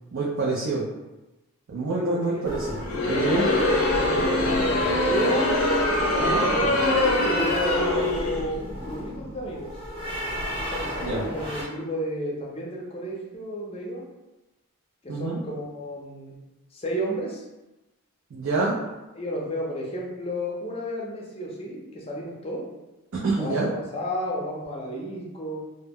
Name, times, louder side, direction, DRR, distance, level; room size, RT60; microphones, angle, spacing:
voice 1, 0.1-0.8 1.7-2.8 3.1-3.5 11.0-11.2 15.1-15.4 18.3-18.8 23.2-23.7, right 3 dB, 70° right, -5 dB, 0.5 m, -26 dB
voice 2, 1.9-2.6 3.4-4.2 5.0-5.5 6.2-9.7 10.7-14.1 15.0-16.3 16.7-17.4 19.1-22.6 23.4-25.6, equal, 25° left, -3 dB, 0.5 m, -32 dB
sound 1, 2.4-11.6, equal, 25° right, 0.8 m, -34 dB
Crowd, 2.8-8.5, left 1 dB, 75° left, 0.6 m, -23 dB
2.1 x 2.0 x 3.5 m, 1.0 s
head